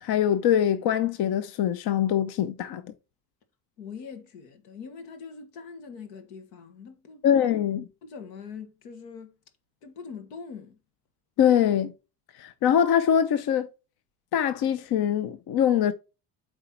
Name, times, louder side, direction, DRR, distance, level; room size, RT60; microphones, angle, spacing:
voice 1, 0.0-2.8 7.2-7.8 11.4-11.9 12.4-13.7 14.3-15.9, left 9 dB, 55° left, 0.8 m, -23 dB
voice 2, 3.8-7.3 8.0-9.4 9.8-10.8, left 6 dB, 80° left, 1.7 m, -42 dB
8.1 x 4.5 x 4.3 m
hypercardioid pair, 70°, 47 cm